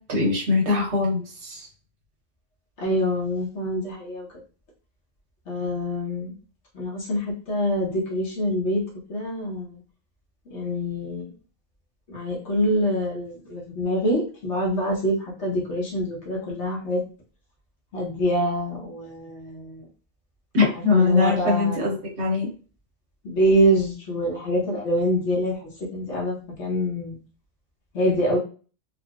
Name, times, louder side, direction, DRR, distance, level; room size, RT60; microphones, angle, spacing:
voice 1, 0.1-1.7 20.5-22.5, left 3 dB, 60° right, -2 dB, 1.2 m, -22 dB
voice 2, 2.8-4.3 5.5-6.3 6.7-8.8 9.1-9.8 10.5-11.3 12.1-17.0 17.9-19.8 20.9-21.9 23.2-27.2 27.9-28.4, equal, 65° left, -3 dB, 1.4 m, -25 dB
3.6 x 2.3 x 2.4 m, 0.37 s
omnidirectional pair, 1.3 m